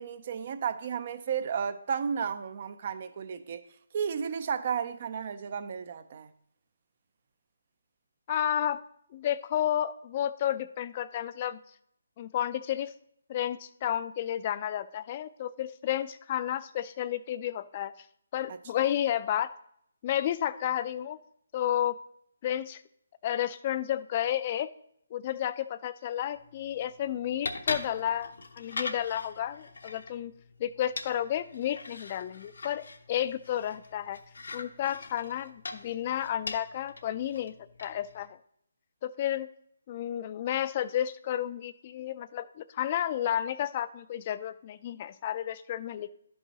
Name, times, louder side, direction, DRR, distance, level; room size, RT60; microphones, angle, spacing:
voice 1, 0.0-3.6 3.9-6.3 18.5-18.9, right 7 dB, 45° right, 0.5 m, -33 dB
voice 2, 8.3-8.8 9.1-11.6 12.2-12.9 13.3-17.9 18.3-19.5 20.0-21.2 21.5-22.0 22.4-22.8 23.2-24.7 25.1-30.3 30.6-34.2 34.5-37.5 37.8-38.4 39.0-39.5 39.9-46.1, left 11 dB, 30° left, 0.4 m, -31 dB
sound 1, 26.3-38.3, left 3 dB, 80° left, 0.8 m, -42 dB
11.5 x 5.4 x 2.9 m
hypercardioid pair, 160°, 0 cm